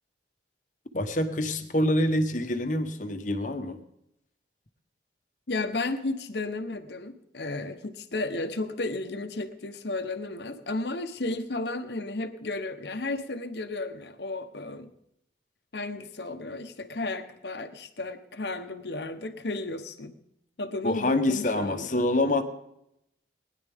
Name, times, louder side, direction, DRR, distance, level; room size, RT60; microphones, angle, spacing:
voice 1, 0.9-3.8 20.8-22.4, left 1 dB, 45° left, 8 dB, 1.0 m, -26 dB
voice 2, 5.5-14.9 15.7-20.2 20.6-22.1, left 2 dB, 70° left, 9 dB, 1.0 m, -33 dB
20.5 x 10.5 x 3.6 m, 0.78 s
head